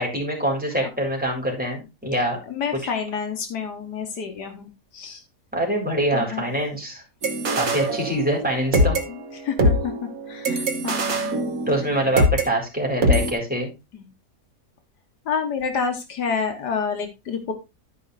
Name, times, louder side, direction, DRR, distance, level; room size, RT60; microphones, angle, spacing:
voice 1, 0.0-2.4 5.5-7.0 7.5-9.0 11.7-13.7, right 1 dB, 5° right, -2 dB, 3.6 m, -24 dB
voice 2, 2.5-5.2 6.1-6.4 7.4-7.6 9.1-11.5 13.9-14.1 15.3-17.5, left 6 dB, 80° left, 6 dB, 1.8 m, -29 dB
sound 1, 7.2-8.4 8.7-12.5 13.0-13.3, equal, 60° right, 1.7 m, -22 dB
12.0 x 5.0 x 4.0 m, 0.25 s
omnidirectional pair, 1.7 m